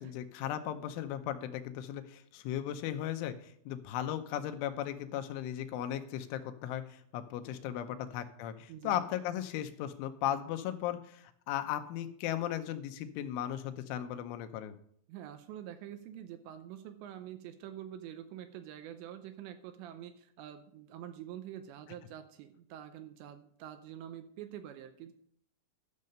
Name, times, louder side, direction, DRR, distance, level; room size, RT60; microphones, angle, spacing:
voice 1, 0.0-14.8, left 11 dB, 90° left, 8 dB, 3.2 m, -36 dB
voice 2, 15.1-25.1, right 11 dB, 80° right, 9 dB, 2.7 m, -46 dB
12.0 x 6.5 x 5.4 m, 0.65 s
omnidirectional pair, 5.5 m